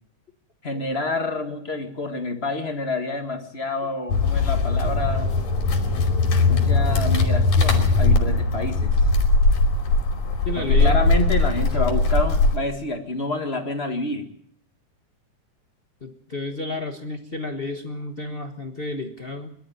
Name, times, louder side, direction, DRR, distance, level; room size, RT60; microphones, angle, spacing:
voice 1, 0.6-5.4 6.5-9.0 10.5-14.2, left 3 dB, 25° left, 6 dB, 1.4 m, -28 dB
sound 1, 4.1-12.6, left 3 dB, 85° left, 4.3 m, -20 dB
voice 2, 10.4-11.1 11.8-11.9 16.0-19.5, left 2 dB, 70° left, 5 dB, 0.5 m, -32 dB
22.5 x 12.5 x 9.1 m, 0.69 s
omnidirectional pair, 3.3 m